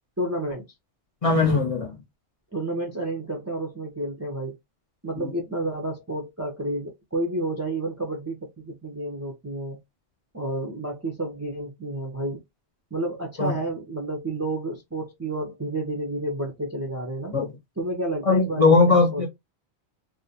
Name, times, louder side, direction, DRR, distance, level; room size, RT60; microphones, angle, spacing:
voice 1, 0.2-0.6 2.5-4.6 5.0-9.8 10.3-12.4 12.9-17.4 17.8-19.3, right 1 dB, 25° right, 0.3 m, -30 dB
voice 2, 1.2-2.0 5.2-5.3 13.4-13.5 17.3-17.5 18.3-19.3, left 3 dB, 40° left, 0.5 m, -19 dB
2.4 x 2.0 x 2.7 m
omnidirectional pair, 1.1 m